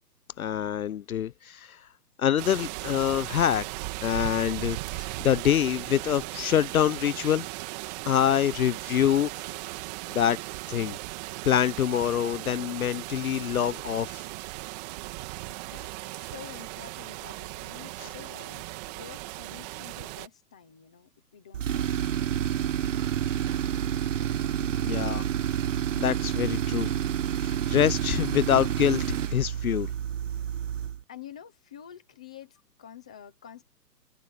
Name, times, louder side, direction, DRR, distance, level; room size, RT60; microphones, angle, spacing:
voice 1, 0.4-1.8 2.2-3.7 4.0-7.5 8.1-9.6 10.1-10.4 10.7-11.0 11.4-14.2 24.8-25.2 26.0-26.9 27.4-29.9, left 10 dB, 60° left, 0.7 m, -26 dB
sound 1, 2.4-20.3, right 24 dB, 25° right, 2.6 m, -37 dB
voice 2, 15.5-22.5 31.1-33.6, left 9 dB, 5° left, 0.5 m, -48 dB
Tools, 21.5-31.0, right 10 dB, 50° right, 1.1 m, -29 dB
hypercardioid pair, 150°, 49 cm